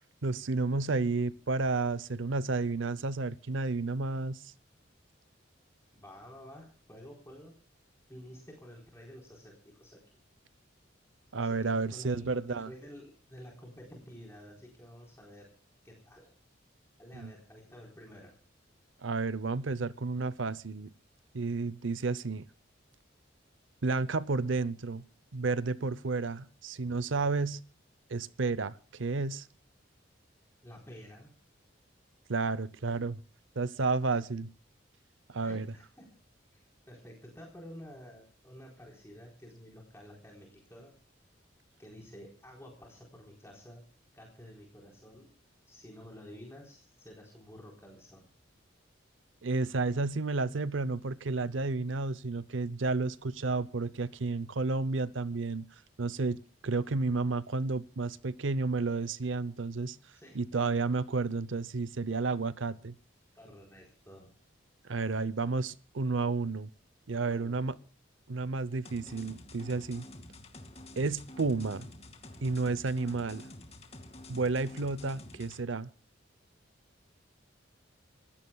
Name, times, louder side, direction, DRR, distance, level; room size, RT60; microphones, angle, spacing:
voice 1, 0.2-4.5 11.3-12.7 17.1-17.3 19.0-20.9 21.3-22.4 23.8-25.0 25.3-27.6 28.1-29.5 32.3-33.2 33.6-34.5 35.3-35.7 49.4-55.7 56.0-60.0 60.3-62.9 64.8-66.7 67.1-67.7 68.3-70.0 71.0-71.9 72.4-73.5 74.3-75.9, right 3 dB, 75° right, 0.7 m, -31 dB
voice 2, 5.9-7.6 8.1-10.0 11.3-15.5 15.8-16.3 17.0-18.4 30.6-31.3 35.4-36.1 36.5-41.0 41.8-43.8 44.1-45.3 45.7-48.3 60.1-60.6 63.3-64.3 67.1-67.7, equal, 15° left, 4.1 m, -51 dB
sound 1, 68.8-75.6, left 1 dB, 30° left, 2.3 m, -49 dB
29.0 x 16.0 x 2.3 m
head